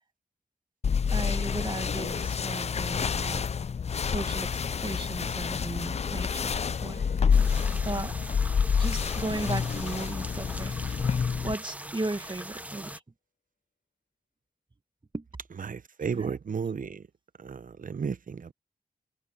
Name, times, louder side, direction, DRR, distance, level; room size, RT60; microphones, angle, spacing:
sound 1, 0.8-11.5, left 6 dB, 45° left, 0.4 m, -28 dB
voice 1, 1.1-3.5 4.0-7.5 7.8-8.1 8.8-10.7 11.4-13.0 15.1-15.3 16.1-16.3, right 2 dB, 30° right, 1.8 m, -36 dB
sound 2, 4.4-10.0 10.3-10.4, left 4 dB, 70° left, 7.2 m, -52 dB
sound 3, 7.3-13.0, right 1 dB, 10° right, 1.1 m, -41 dB
voice 2, 15.6-17.1 17.4-18.5, right 6 dB, 60° right, 0.7 m, -33 dB
cardioid pair, 60°, 15 cm